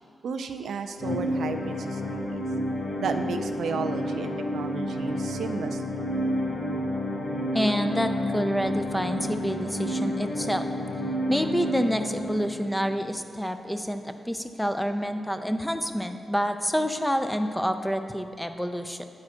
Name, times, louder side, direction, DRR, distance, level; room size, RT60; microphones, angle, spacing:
voice 1, 0.2-2.4 3.0-5.8, right 5 dB, 85° right, 7 dB, 0.4 m, -33 dB
sound 1, 1.0-13.0, equal, 55° left, 0.9 m, -30 dB
voice 2, 7.5-10.7 11.3-19.1, equal, 5° left, 7 dB, 0.4 m, -28 dB
8.7 x 4.2 x 4.9 m, 2.6 s
wide cardioid pair, 110°, 0 cm